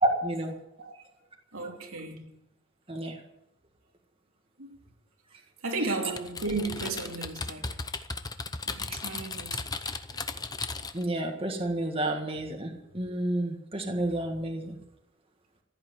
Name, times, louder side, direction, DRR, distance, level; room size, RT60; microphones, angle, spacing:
voice 1, 0.0-0.5 2.9-3.2 10.9-14.8, right 1 dB, 25° right, 1.7 m, -30 dB
voice 2, 1.5-2.3 4.6-4.8 5.6-7.8 8.7-9.7, right 3 dB, 80° right, 2.9 m, -34 dB
Typing, 6.2-11.1, left 4 dB, 20° left, 0.8 m, -36 dB
15.5 x 9.1 x 9.5 m
head